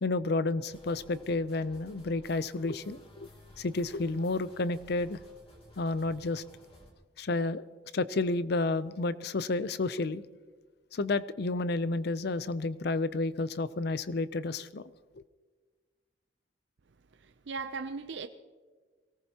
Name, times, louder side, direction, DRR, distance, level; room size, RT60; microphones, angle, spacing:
voice 1, 0.0-3.3 3.6-5.2 5.8-6.4 7.2-7.6 7.9-10.2 10.9-14.8, left 3 dB, 60° left, 0.5 m, -31 dB
sound 1, 0.7-6.9, left 1 dB, 30° left, 2.9 m, -56 dB
voice 2, 17.1-18.3, right 4 dB, 65° right, 0.5 m, -38 dB
23.5 x 18.0 x 2.9 m
head